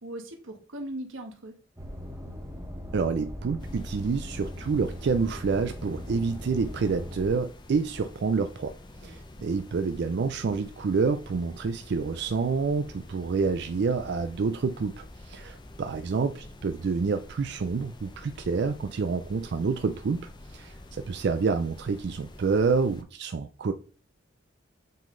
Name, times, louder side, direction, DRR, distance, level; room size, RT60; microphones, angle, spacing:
voice 1, 0.0-1.6 8.9-9.1, right 1 dB, 85° right, 1.3 m, -39 dB
sound 1, 1.8-7.3, equal, 15° right, 1.2 m, -39 dB
voice 2, 2.9-8.7 9.0-23.7, right 5 dB, 60° right, 0.4 m, -28 dB
sound 2, 3.6-23.0, left 1 dB, 25° left, 0.6 m, -47 dB
7.5 x 3.8 x 3.7 m
head